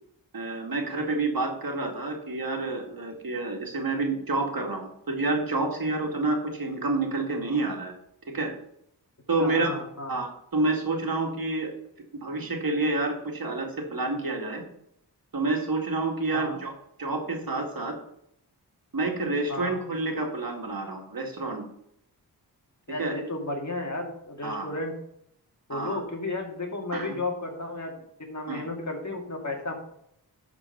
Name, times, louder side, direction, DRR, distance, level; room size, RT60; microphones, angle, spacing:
voice 1, 0.3-7.9 8.3-8.5 9.3-9.7 10.1-11.7 12.2-14.6 15.3-16.7 17.0-18.0 18.9-21.6 23.0-23.1 24.4-24.7 25.7-26.0 26.9-27.2 28.5-28.6, right 2 dB, 60° right, 2 dB, 2.1 m, -28 dB
voice 2, 9.4-10.2 16.3-16.6 19.5-19.8 22.9-24.9 25.7-29.7, left 2 dB, 45° left, 2 dB, 2.2 m, -33 dB
11.5 x 4.5 x 5.7 m, 0.75 s
wide cardioid pair, 80°, 39 cm